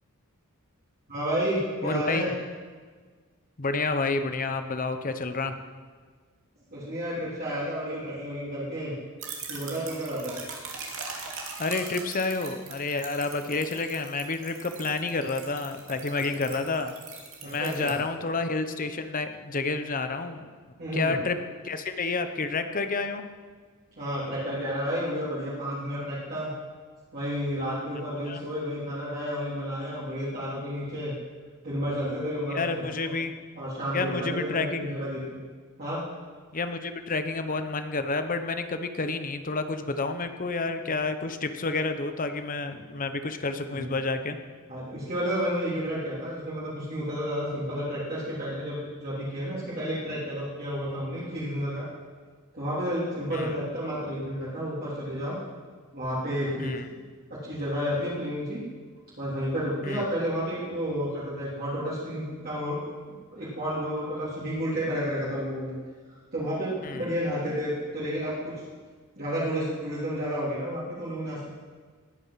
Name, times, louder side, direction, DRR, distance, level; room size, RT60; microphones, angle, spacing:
voice 1, 1.1-2.3 6.7-8.9 9.5-10.4 16.3-16.4 17.4-17.9 20.8-21.1 24.0-26.5 27.1-31.1 31.6-33.1 33.6-35.4 35.8-36.0 43.7-43.9 44.7-51.9 52.5-55.4 55.9-57.0 57.4-58.6 59.2-62.8 63.3-65.7 66.3-68.7 69.2-71.5, equal, 45° right, -9 dB, 3.5 m, -31 dB
voice 2, 1.8-2.2 3.6-5.6 11.6-16.9 17.4-20.5 20.9-21.4 21.6-23.3 28.3-28.4 32.5-33.4 33.9-34.9 36.5-44.4 53.3-53.5 56.6-56.9 59.8-60.1 66.8-67.1, left 3 dB, 40° left, 8 dB, 0.9 m, -29 dB
sound 1, 9.2-17.9, right 5 dB, 65° right, 2.6 m, -41 dB
19.5 x 9.1 x 5.8 m, 1.5 s
head